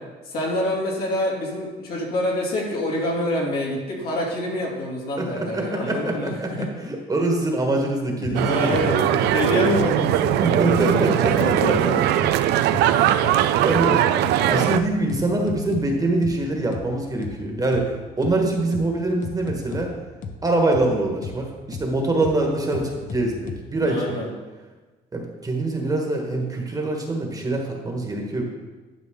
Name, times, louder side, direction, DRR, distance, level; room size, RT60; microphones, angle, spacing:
voice 1, 0.2-6.7 8.3-9.0 9.3-11.1 11.4-12.0 12.5-13.3 23.8-24.3, left 1 dB, 65° left, -4 dB, 2.6 m, -27 dB
voice 2, 5.2-9.2 10.4-11.8 12.9-13.3 13.6-19.9 20.4-24.2 25.1-28.4, right 2 dB, 20° right, 1 dB, 1.4 m, -24 dB
sound 1, 8.2-8.4 8.7-8.9 9.2-9.4 9.7-9.9 10.2-10.4 10.7-10.9 11.2-11.9 12.2-12.4 12.7-12.9 13.2-13.4 13.7-13.9 14.2-14.4 14.7-15.9 16.2-16.4 16.7-16.9 17.2-17.4 17.7-17.9 18.2-18.4 18.7-18.9 19.2-19.9 20.2-20.4 20.7-20.9 21.2-21.4 21.7-21.9 22.2-22.4 22.7-23.6, left 5 dB, 50° left, 0.9 m, -34 dB
sound 2, 8.3-14.8, right 12 dB, 75° right, 0.4 m, -20 dB
11.5 x 5.3 x 3.7 m, 1.3 s
cardioid pair, 110°, 17 cm